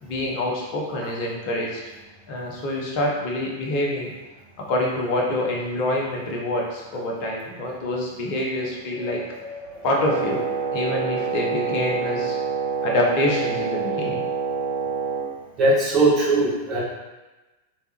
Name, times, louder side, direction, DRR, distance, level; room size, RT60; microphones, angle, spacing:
voice 1, 0.0-1.8 2.3-4.1 4.7-9.2 9.8-10.4 10.7-12.4 12.8-14.2, left 1 dB, 45° left, -2 dB, 0.9 m, -26 dB
voice 2, 9.0-9.9 15.6-16.8, right 2 dB, 30° right, -7 dB, 1.4 m, -21 dB
Wind instrument woodwind instrument, 9.9-15.3, right 5 dB, 75° left, 1.3 m, -27 dB
3.4 x 3.4 x 2.9 m, 1.1 s
figure-of-eight pair, 90°, 0 cm